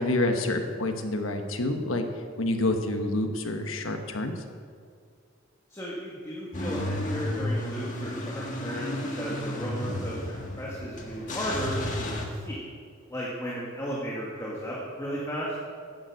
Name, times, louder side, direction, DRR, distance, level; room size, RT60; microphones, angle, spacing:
voice 1, 0.0-2.0 2.4-4.3, left 2 dB, 90° left, 6 dB, 1.2 m, -27 dB
voice 2, 5.7-12.6 13.1-15.5, equal, 15° left, -5 dB, 1.7 m, -35 dB
Car / Engine starting / Idling, 6.5-12.3, left 1 dB, 40° left, 1.6 m, -32 dB
10.5 x 9.1 x 6.4 m, 2.1 s
head